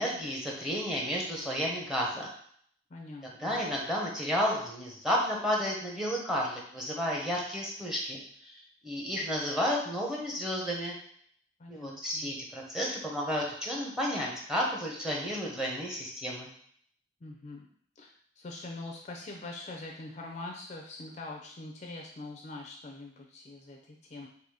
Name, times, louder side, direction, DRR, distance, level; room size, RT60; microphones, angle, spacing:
voice 1, 0.0-2.3 3.4-8.5 8.8-10.9 11.7-16.5, equal, 5° right, -2 dB, 0.9 m, -32 dB
voice 2, 2.9-3.6 11.6-12.3 17.2-17.7 18.0-18.1 18.4-24.3, left 2 dB, 35° left, 0 dB, 0.5 m, -43 dB
4.0 x 2.7 x 4.8 m, 0.63 s
head